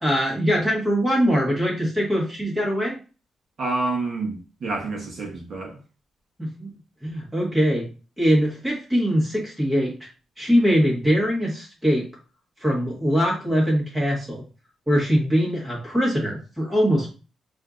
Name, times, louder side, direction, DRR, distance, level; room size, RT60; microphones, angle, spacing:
voice 1, 0.0-3.0 6.4-6.7 7.0-7.9 8.2-10.1 10.4-12.1 12.6-14.4 14.9-17.1, equal, 5° right, 1.5 m, -22 dB
voice 2, 3.6-5.7, right 2 dB, 45° right, 1.0 m, -28 dB
6.4 x 2.6 x 2.5 m
wide cardioid pair, 175°, 0 cm